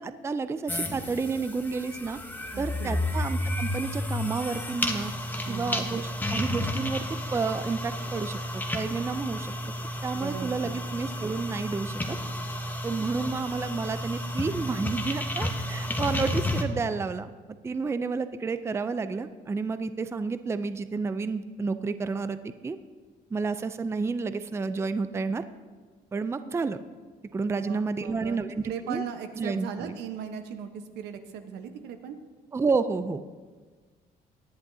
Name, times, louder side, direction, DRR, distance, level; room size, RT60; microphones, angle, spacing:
voice 1, 0.0-2.2 2.6-5.1 5.5-9.5 10.0-12.2 12.8-17.3 17.6-22.8 23.3-25.4 26.1-26.8 27.3-29.0 29.4-30.0 32.5-33.2, right 4 dB, 15° right, 12 dB, 0.4 m, -30 dB
sound 1, 0.7-16.6, left 1 dB, 10° left, 1.0 m, -32 dB
voice 2, 2.5-3.2 5.5-6.0 10.1-10.8 27.6-28.4 28.6-30.7 30.9-32.2, right 7 dB, 85° right, 7 dB, 1.0 m, -38 dB
18.0 x 11.0 x 2.7 m, 1.4 s
cardioid pair, 110°, 17 cm